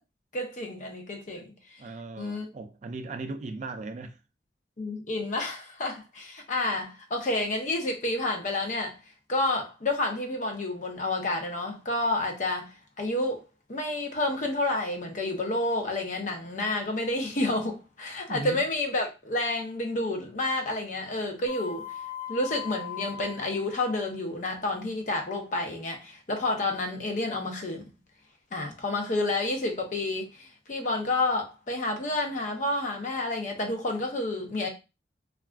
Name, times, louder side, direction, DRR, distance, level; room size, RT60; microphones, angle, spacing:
voice 1, 0.3-1.5 2.2-2.5 4.8-9.0 9.3-13.4 13.7-21.8 22.3-27.8 28.5-34.7, left 2 dB, 45° left, 0.6 m, -30 dB
voice 2, 1.8-4.2 18.3-18.6, right 3 dB, 40° right, 0.3 m, -37 dB
sound 1, 21.5-24.1, left 9 dB, 75° left, 1.1 m, -39 dB
2.4 x 2.3 x 3.3 m
head